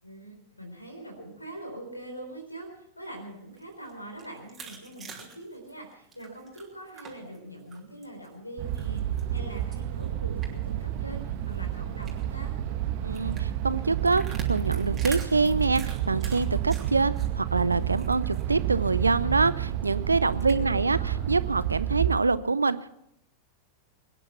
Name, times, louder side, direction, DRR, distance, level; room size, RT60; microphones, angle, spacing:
voice 1, 0.0-12.5 20.4-21.2, right 1 dB, 85° left, 4 dB, 4.0 m, -43 dB
sound 1, 3.4-7.4 7.7-8.3 8.7-10.8 11.1-11.2 11.5-11.7 12.0-12.3 13.1-17.3 17.6-18.4 18.8-18.9 19.2-19.3 20.3-20.5, right 5 dB, 20° right, 3.1 m, -44 dB
sound 2, 8.6-22.1, right 11 dB, 45° right, 1.2 m, -30 dB
voice 2, 13.0-14.2 14.5-21.0 21.3-22.9, right 3 dB, 80° right, 17 dB, 0.6 m, -25 dB
23.0 x 10.0 x 5.8 m, 0.79 s
figure-of-eight pair, 90°, 0 cm